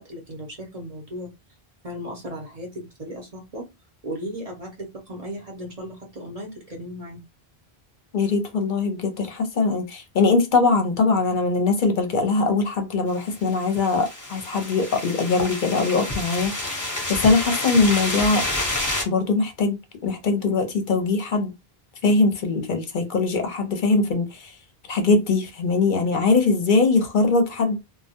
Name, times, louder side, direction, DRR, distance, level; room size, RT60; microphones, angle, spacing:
voice 1, 0.0-1.3 1.8-3.7 4.0-7.2, equal, 40° right, 0.7 m, -36 dB
voice 2, 8.1-18.4 19.1-19.8 20.0-21.5 22.0-24.5 24.9-27.8, left 3 dB, 55° left, 0.7 m, -21 dB
sound 1, 13.3-19.0, left 2 dB, 20° left, 0.7 m, -29 dB
2.2 x 2.1 x 2.8 m
omnidirectional pair, 1.0 m